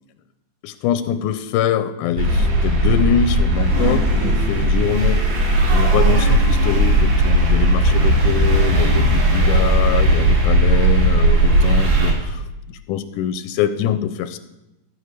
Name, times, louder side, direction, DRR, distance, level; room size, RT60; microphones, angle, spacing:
voice 1, 0.6-5.4 5.7-12.4 12.7-14.4, left 9 dB, 85° left, 11 dB, 2.1 m, -24 dB
sound 1, 2.2-12.1, right 1 dB, 85° right, 3.6 m, -16 dB
13.5 x 5.0 x 6.6 m, 0.96 s
omnidirectional pair, 3.6 m